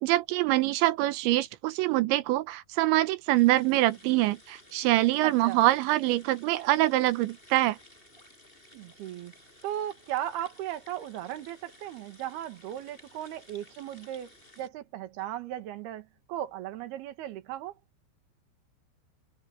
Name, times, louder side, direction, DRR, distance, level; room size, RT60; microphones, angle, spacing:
voice 1, 0.0-7.8, right 17 dB, 80° right, 2.8 m, -24 dB
sound 1, 3.3-14.7, left 1 dB, 10° left, 7.2 m, -56 dB
voice 2, 5.2-5.7 8.7-9.3 9.6-17.7, right 12 dB, 60° right, 3.3 m, -37 dB
omnidirectional pair, 5.8 m